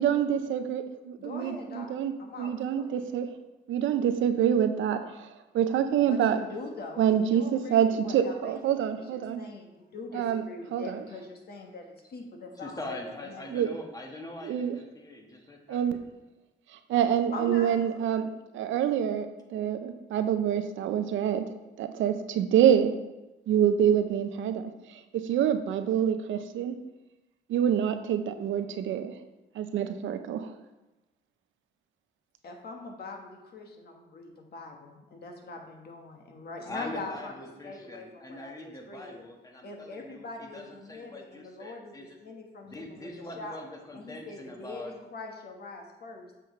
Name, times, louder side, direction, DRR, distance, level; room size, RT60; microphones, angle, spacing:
voice 1, 0.0-3.3 3.7-6.4 7.0-9.4 10.1-10.4 10.7-11.0 13.5-13.7 14.4-14.8 15.7-16.0 16.9-21.5 21.8-22.9 23.5-26.8 27.5-29.1 29.6-30.5, right 9 dB, 75° right, 9 dB, 0.6 m, -26 dB
voice 2, 1.2-1.9 2.2-3.0 6.0-13.0 13.3-13.5 17.3-17.8 32.4-37.4 37.6-39.2 39.6-41.9 42.2-43.6 43.9-46.3, left 3 dB, 55° left, 2 dB, 1.4 m, -42 dB
voice 3, 12.6-15.8 36.6-42.2 42.6-44.9, left 1 dB, 20° left, 1 dB, 1.4 m, -43 dB
7.8 x 6.2 x 3.2 m, 1.0 s
cardioid pair, 90°, 20 cm